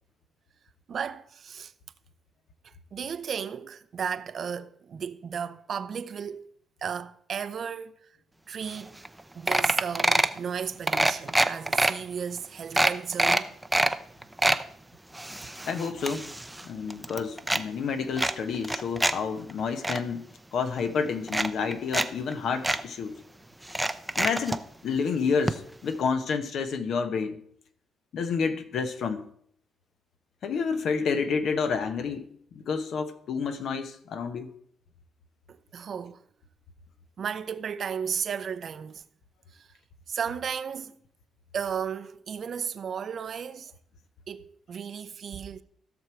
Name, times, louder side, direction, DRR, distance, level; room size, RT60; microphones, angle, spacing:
voice 1, 0.9-1.7 2.6-6.5 6.8-8.1 8.5-9.0 9.3-13.6 35.5-36.2 37.2-39.0 39.5-39.7 40.1-41.0 41.5-43.7 44.3-45.6, right 7 dB, 55° right, 0.6 m, -34 dB
sound 1, 8.8-8.9 9.1-9.2 9.5-10.4 10.9-11.9 12.4-12.5 12.8-13.9 14.2-14.6 15.1-16.7 16.9-17.6 18.2-19.1 19.5-20.0 20.8-20.9 21.3-22.1 22.3-22.4 22.6-22.8 23.7-24.6 25.5-25.6 25.9-26.0, right 1 dB, 10° right, 0.6 m, -25 dB
voice 2, 15.6-16.3 16.6-20.2 20.5-23.2 24.2-27.4 28.1-29.3 30.4-34.5, left 5 dB, 65° left, 1.1 m, -29 dB
15.5 x 6.2 x 4.5 m
cardioid pair, 90°, 0 cm